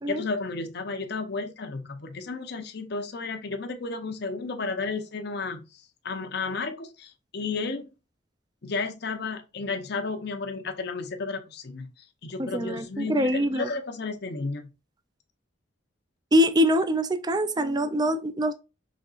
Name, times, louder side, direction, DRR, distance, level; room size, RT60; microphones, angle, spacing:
voice 1, 0.1-7.9 8.6-11.9 12.2-14.7, left 4 dB, 60° left, 0.7 m, -33 dB
voice 2, 12.4-13.7 16.3-18.5, equal, 20° right, 0.4 m, -24 dB
5.1 x 3.5 x 2.4 m
head